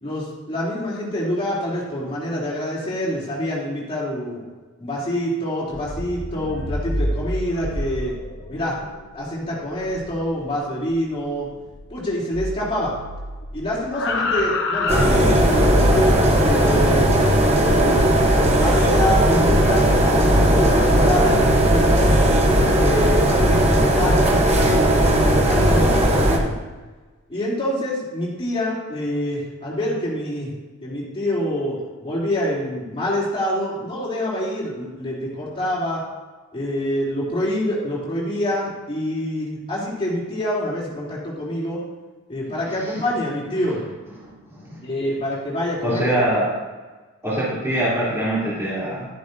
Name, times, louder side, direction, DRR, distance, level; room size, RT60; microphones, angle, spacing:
voice 1, 0.0-4.4 4.8-8.1 8.5-8.8 9.1-11.5 11.9-12.9 13.5-17.1 17.8-18.0 18.3-22.1 22.5-26.5 27.3-30.5 30.8-36.0 36.5-41.8 42.3-43.8 44.8-46.2, equal, 25° left, -7 dB, 3.2 m, -26 dB
sound 1, 5.6-12.1 12.3-15.7 17.1-18.4 19.0-21.7, left 2 dB, 55° left, 1.0 m, -30 dB
sound 2, 14.9-26.4, right 1 dB, 30° right, 1.0 m, -17 dB
voice 2, 42.7-43.0 44.2-44.8 45.8-46.5 47.2-49.1, right 1 dB, 10° right, -10 dB, 3.4 m, -24 dB
12.0 x 11.0 x 2.8 m, 1.3 s
head